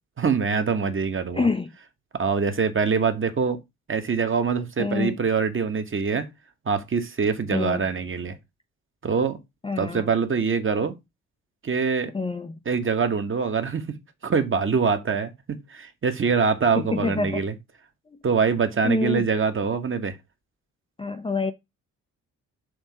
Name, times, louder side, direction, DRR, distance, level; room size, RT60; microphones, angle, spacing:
voice 1, 0.2-1.5 2.1-3.6 3.9-6.3 6.6-8.3 9.0-9.4 9.8-10.9 11.6-12.1 12.6-14.0 14.2-17.5 18.2-20.1, right 5 dB, 30° right, 1.2 m, -24 dB
voice 2, 1.3-1.7 4.8-5.1 7.5-7.9 9.6-10.1 12.1-12.6 16.8-17.4 18.1-18.2 18.8-19.3 21.0-21.5, left 4 dB, 15° left, 0.6 m, -26 dB
6.5 x 3.6 x 4.7 m
figure-of-eight pair, 45°, 40 cm